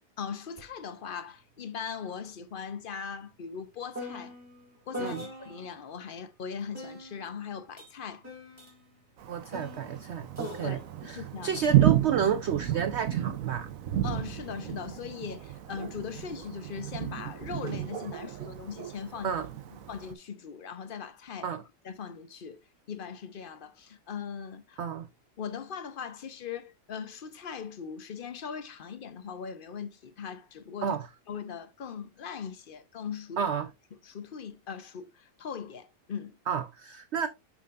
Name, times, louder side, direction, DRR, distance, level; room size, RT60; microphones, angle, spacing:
voice 1, 0.2-4.4 4.9-8.2 10.6-11.5 14.0-19.4 19.7-21.5 21.8-22.6 22.9-24.8 25.4-31.0 31.3-33.4 33.9-36.4, left 6 dB, 60° left, 0.5 m, -40 dB
sound 1, 0.6-0.7 1.1-5.8 6.7-12.3 13.1-13.6, left 1 dB, 10° right, 1.9 m, -44 dB
Thunder, 9.2-20.1, right 12 dB, 65° right, 1.0 m, -31 dB
voice 2, 9.3-10.8 11.1-13.7 19.2-19.5 21.4-21.6 24.8-25.1 30.8-31.1 33.4-33.7 36.5-37.3, right 7 dB, 80° right, 0.6 m, -30 dB
6.9 x 6.3 x 2.4 m
omnidirectional pair, 1.8 m